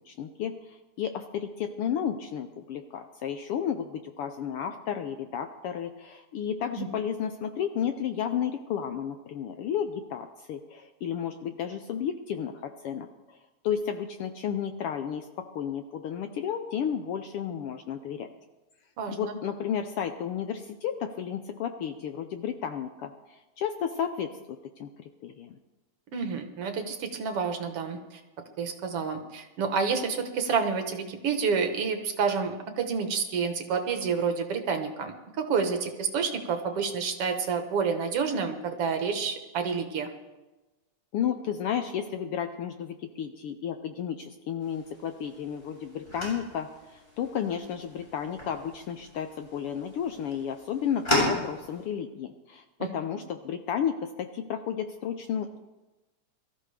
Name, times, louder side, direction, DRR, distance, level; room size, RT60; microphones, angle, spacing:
voice 1, 0.0-13.4 13.6-18.3 19.1-25.6 41.1-55.6, left 8 dB, 75° left, 7 dB, 1.3 m, -32 dB
voice 2, 19.0-19.4 26.1-28.2 28.6-40.1 52.8-52.9, right 5 dB, 60° right, 6 dB, 1.9 m, -29 dB
sound 1, 44.6-51.8, left 1 dB, 15° left, 7.2 m, -35 dB
22.5 x 14.0 x 3.4 m, 1.1 s
omnidirectional pair, 3.3 m